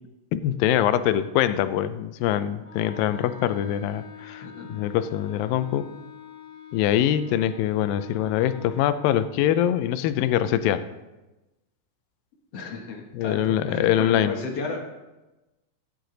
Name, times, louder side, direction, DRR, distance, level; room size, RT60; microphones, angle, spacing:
voice 1, 0.3-5.9 6.7-10.9 13.1-14.3, left 11 dB, 85° left, 12 dB, 2.3 m, -24 dB
Wind instrument woodwind instrument, 2.6-9.0, left 9 dB, 25° right, 0.8 m, -45 dB
voice 2, 4.4-4.8 12.5-14.8, left 4 dB, 55° left, 1 dB, 2.0 m, -33 dB
15.5 x 9.8 x 3.9 m, 1.1 s
omnidirectional pair, 4.0 m